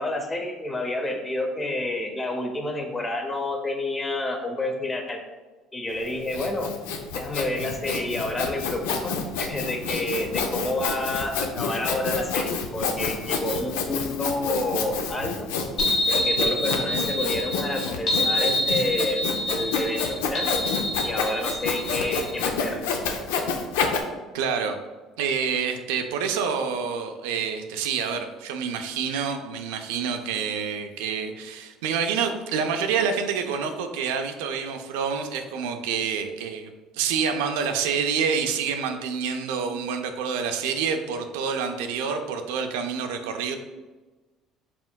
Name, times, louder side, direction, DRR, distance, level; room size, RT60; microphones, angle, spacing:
voice 1, 0.0-5.2 5.7-6.7 7.1-15.5 16.1-20.5 21.0-22.8, left 2 dB, 20° left, 4 dB, 0.7 m, -29 dB
Sawing, 6.0-24.0, left 5 dB, 85° left, 0.4 m, -29 dB
sound 1, 15.8-22.4, equal, 55° left, 1.2 m, -27 dB
voice 2, 24.3-24.8 25.2-43.6, right 6 dB, 85° right, 6 dB, 0.3 m, -27 dB
4.2 x 3.6 x 2.2 m, 1.2 s
supercardioid pair, 80°, 0 cm